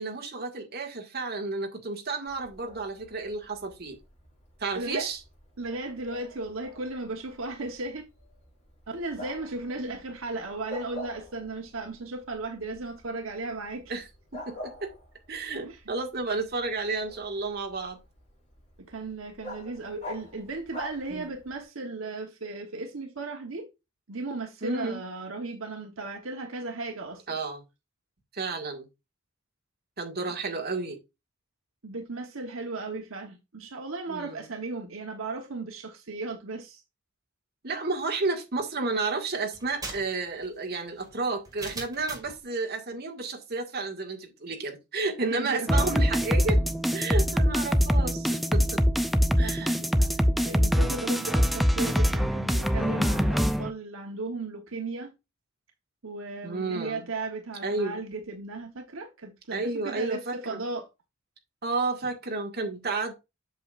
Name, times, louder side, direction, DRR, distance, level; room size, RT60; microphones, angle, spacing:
voice 1, 0.0-4.0 4.6-5.2 9.8-10.0 13.9-14.0 14.3-14.9 15.3-18.0 21.1-21.3 24.6-25.0 27.3-27.6 28.3-28.9 30.0-31.0 34.1-34.5 37.6-46.6 46.9-48.8 49.4-49.8 56.4-57.1 57.6-58.0 59.5-60.6 61.6-63.1, right 3 dB, 50° right, 1.9 m, -31 dB
Bark, 2.3-21.6, left 1 dB, 35° left, 4.7 m, -48 dB
voice 2, 4.7-5.1 5.6-8.0 8.9-13.9 15.6-15.8 18.9-23.7 24.1-27.4 31.8-36.8 45.2-45.7 49.4-55.1 56.0-60.9, right 2 dB, 80° right, 1.1 m, -36 dB
sound 1, 39.5-42.4, right 3 dB, 20° right, 2.1 m, -41 dB
sound 2, 45.7-53.7, equal, ahead, 0.4 m, -24 dB
7.8 x 6.7 x 2.5 m
head